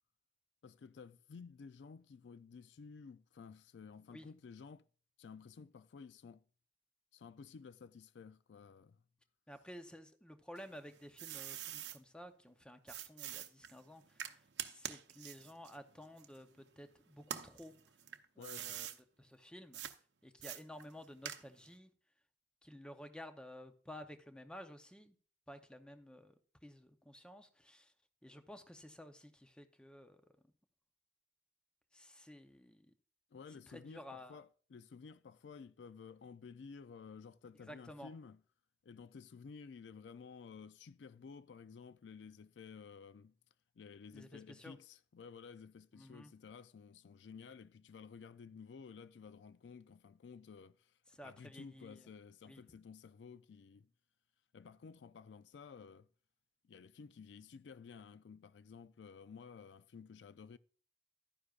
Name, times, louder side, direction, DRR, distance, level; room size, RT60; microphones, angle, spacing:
voice 1, 0.6-4.9 5.2-6.4 7.1-9.0 18.4-18.8 33.3-38.4 38.8-43.3 43.8-53.9 54.5-56.1 56.6-60.6, left 5 dB, 85° left, 0.4 m, -54 dB
voice 2, 9.5-17.7 18.4-18.9 19.2-19.8 20.2-21.9 22.6-25.2 25.5-26.3 26.6-27.9 28.2-30.2 31.9-32.9 33.7-34.4 37.6-38.1 44.1-44.8 45.9-46.3 51.1-52.1 52.5-52.6, equal, 5° left, 0.7 m, -53 dB
sound 1, 10.6-12.0 12.9-16.8 17.2-19.0 19.7-20.0 20.4-21.7, right 10 dB, 75° right, 0.7 m, -46 dB
11.5 x 9.7 x 2.4 m
head